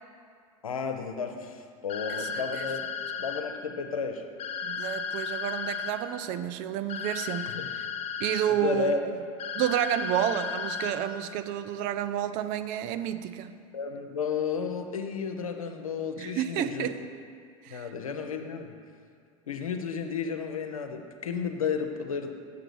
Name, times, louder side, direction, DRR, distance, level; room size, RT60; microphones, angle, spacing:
voice 1, 0.6-2.8 3.2-4.2 7.5-7.7 8.5-9.1 13.7-17.0 17.7-18.7 19.5-22.4, left 5 dB, 90° left, 6 dB, 0.6 m, -32 dB
sound 1, 1.9-3.4 4.4-5.9 6.9-8.4 9.4-10.9, left 6 dB, 40° left, 0.6 m, -34 dB
voice 2, 2.2-2.7 4.6-7.9 8.2-9.0 9.5-13.6 16.2-17.0 17.6-17.9, right 11 dB, 50° right, 11 dB, 0.4 m, -30 dB
6.9 x 3.9 x 6.2 m, 2.2 s
hypercardioid pair, 80°, 17 cm